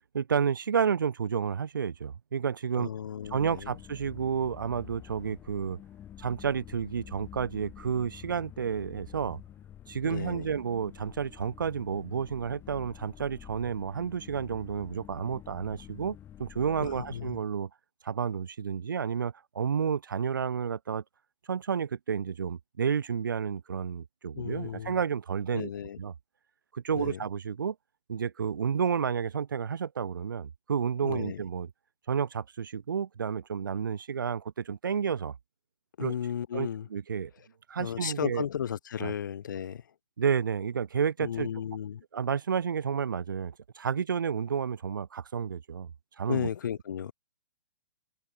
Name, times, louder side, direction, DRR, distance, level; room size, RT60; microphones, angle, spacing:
voice 1, 0.1-2.9 3.3-5.8 6.2-9.4 9.9-17.7 18.0-21.0 21.5-25.7 26.0-26.1 26.7-27.7 28.1-31.7 32.1-35.3 36.0-36.1 36.5-37.3 37.7-38.4 39.0-39.1 40.2-41.5 42.1-45.9 46.2-46.5, right 7 dB, 75° right, 1.1 m, -31 dB
voice 2, 2.8-3.7 10.0-10.5 16.8-17.4 24.3-25.0 25.5-26.0 26.9-27.2 31.0-31.4 36.0-36.9 37.8-39.8 41.2-42.0 46.3-47.1, left 9 dB, 65° left, 2.4 m, -34 dB
sound 1, 3.2-17.4, left 10 dB, 20° left, 2.4 m, -49 dB
hypercardioid pair, 130°, 11 cm